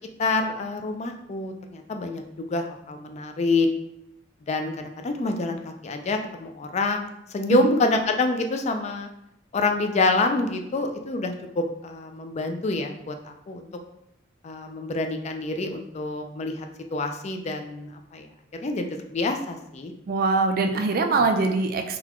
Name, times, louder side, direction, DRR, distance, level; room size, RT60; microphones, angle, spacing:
voice 1, 0.2-3.7 4.5-9.1 9.5-13.7 14.4-18.3 18.6-19.9 21.1-21.2, left 2 dB, 35° left, 5 dB, 0.3 m, -27 dB
voice 2, 20.1-22.0, right 3 dB, 50° right, 6 dB, 0.4 m, -23 dB
3.9 x 2.3 x 2.9 m, 0.81 s
head